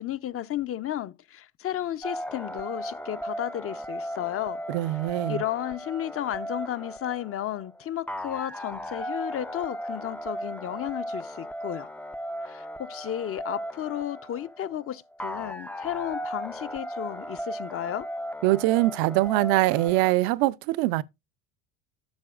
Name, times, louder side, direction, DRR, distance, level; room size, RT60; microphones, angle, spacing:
voice 1, 0.0-4.6 5.3-11.9 12.4-18.1, left 11 dB, 35° left, 0.7 m, -33 dB
sound 1, 2.0-20.1, equal, 5° left, 0.4 m, -36 dB
voice 2, 4.7-5.4 18.4-21.0, right 18 dB, 70° right, 0.6 m, -23 dB
11.5 x 6.9 x 2.4 m
supercardioid pair, 90°, 38 cm